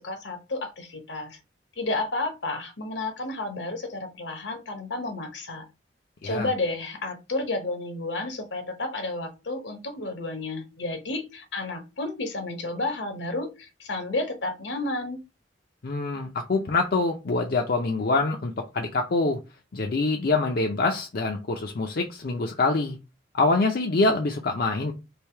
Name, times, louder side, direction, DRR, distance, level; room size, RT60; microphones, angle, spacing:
voice 1, 0.0-1.4 1.8-5.6 6.2-15.2, left 2 dB, 70° left, 0.9 m, -31 dB
voice 2, 15.8-19.4 19.7-23.0 23.3-24.9, left 3 dB, 50° left, 0.5 m, -25 dB
3.4 x 2.6 x 4.4 m
head